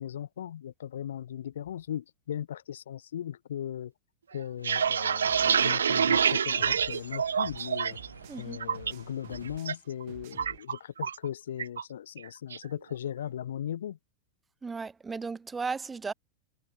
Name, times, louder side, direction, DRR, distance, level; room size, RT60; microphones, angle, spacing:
voice 1, 0.0-3.9 4.3-8.0 8.4-14.0, left 10 dB, 65° left, 0.8 m, -38 dB
sound 1, 4.4-8.1 8.4-8.9 9.3-9.7 10.0-11.3 11.6-11.8 12.2-12.6, right 7 dB, 70° right, 0.6 m, -27 dB
sound 2, 4.6-9.6, right 1 dB, 85° right, 4.1 m, -49 dB
sound 3, 5.2-10.6, right 27 dB, 50° right, 7.3 m, -51 dB
voice 2, 8.3-8.6 14.6-16.1, right 4 dB, 15° right, 3.6 m, -35 dB
figure-of-eight pair, 90°, 0 cm